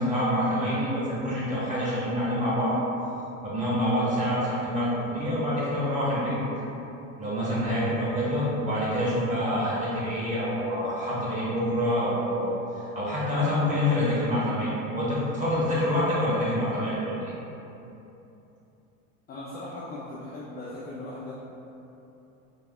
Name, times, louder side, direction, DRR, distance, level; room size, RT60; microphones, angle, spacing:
voice 1, 0.0-2.7 3.4-6.4 7.2-17.3, equal, 15° right, -8 dB, 1.4 m, -26 dB
voice 2, 19.3-21.3, left 2 dB, 25° left, -7 dB, 0.5 m, -38 dB
4.7 x 3.3 x 2.3 m, 2.9 s
supercardioid pair, 110°, 42 cm